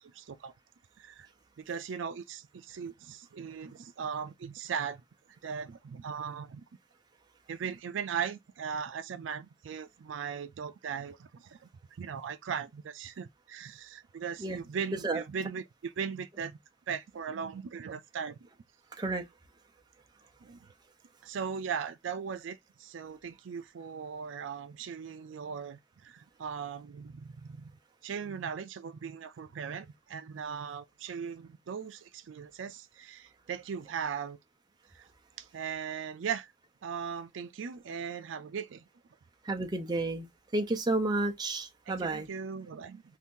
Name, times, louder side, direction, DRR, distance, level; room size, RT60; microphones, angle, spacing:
voice 1, 0.1-0.5 1.0-1.3 1.6-5.0 5.4-6.6 7.5-11.6 12.0-16.6 16.9-18.4 20.4-20.6 21.2-27.7 28.0-34.4 34.9-35.0 35.4-36.5 36.8-38.9 41.9-43.0, right 7 dB, 85° right, 0.4 m, -38 dB
voice 2, 39.4-40.3 40.5-42.3, right 2 dB, 20° right, 0.5 m, -31 dB
2.7 x 2.5 x 3.6 m
head